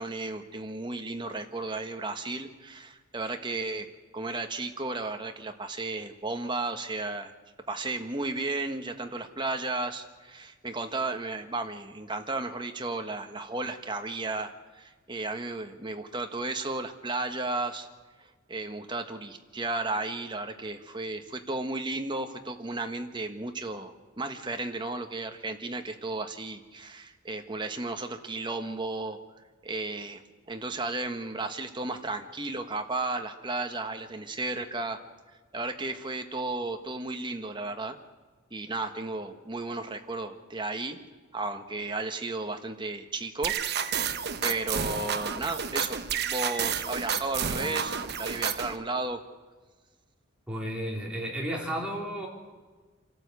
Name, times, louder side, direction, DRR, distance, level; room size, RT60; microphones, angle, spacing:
voice 1, 0.0-3.9 4.1-7.3 7.7-17.9 18.5-29.2 29.6-35.0 35.5-38.0 38.5-41.0 41.3-43.5 44.1-49.2, right 2 dB, 25° right, 6 dB, 1.3 m, -34 dB
sound 1, 43.4-48.8, right 7 dB, 50° right, 1.0 m, -30 dB
voice 2, 50.5-52.3, right 1 dB, 5° right, -2 dB, 3.7 m, -33 dB
27.0 x 12.5 x 8.3 m, 1.3 s
head